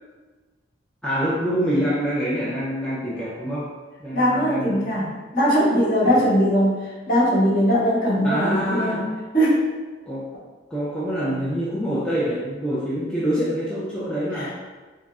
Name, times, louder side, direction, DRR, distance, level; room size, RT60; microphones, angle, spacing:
voice 1, 1.0-3.7 4.0-4.9 6.0-6.2 8.2-9.1 10.1-10.3 10.7-14.5, equal, 5° left, -9 dB, 0.3 m, -26 dB
voice 2, 4.1-9.0 9.3-9.6 14.3-14.5, equal, 45° left, -10 dB, 1.2 m, -20 dB
3.6 x 2.0 x 2.3 m, 1.3 s
head